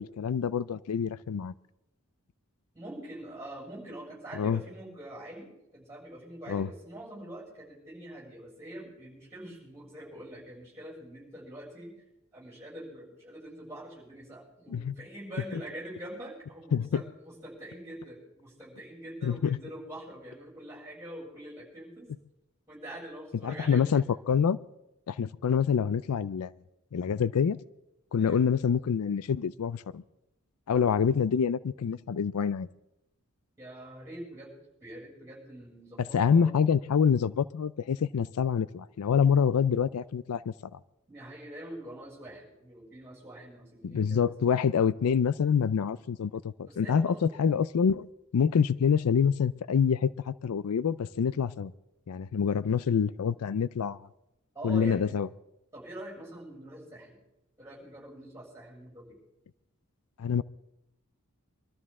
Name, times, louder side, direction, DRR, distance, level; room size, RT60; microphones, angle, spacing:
voice 1, 0.0-1.5 4.4-4.6 6.5-6.7 14.7-14.9 15.5-15.6 16.7-17.0 19.2-19.6 23.4-24.6 25.1-26.5 26.9-27.6 28.1-30.0 30.7-32.7 36.1-40.8 43.8-48.1 48.3-51.7 52.1-54.1 54.6-55.3 60.2-60.4, left 7 dB, 85° left, 18 dB, 0.4 m, -26 dB
voice 2, 2.7-11.9 12.3-22.1 22.7-24.1 28.2-28.4 33.6-34.5 34.8-36.5 41.1-44.3 46.6-47.2 54.5-55.2 55.7-57.2 57.6-59.2, right 1 dB, 15° right, -4 dB, 6.9 m, -44 dB
24.0 x 13.0 x 3.7 m, 0.88 s
head